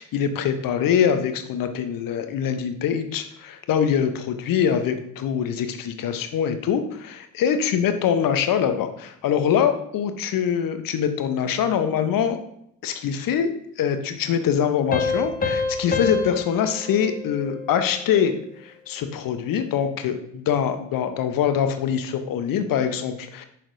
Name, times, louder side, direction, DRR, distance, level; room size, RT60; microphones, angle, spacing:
voice 1, 0.0-12.4 12.8-13.5 13.8-23.5, left 8 dB, 45° left, 8 dB, 0.9 m, -24 dB
Piano, 14.9-18.2, left 4 dB, 20° left, 1.1 m, -28 dB
6.4 x 5.9 x 2.7 m, 0.74 s
hypercardioid pair, 60°, 47 cm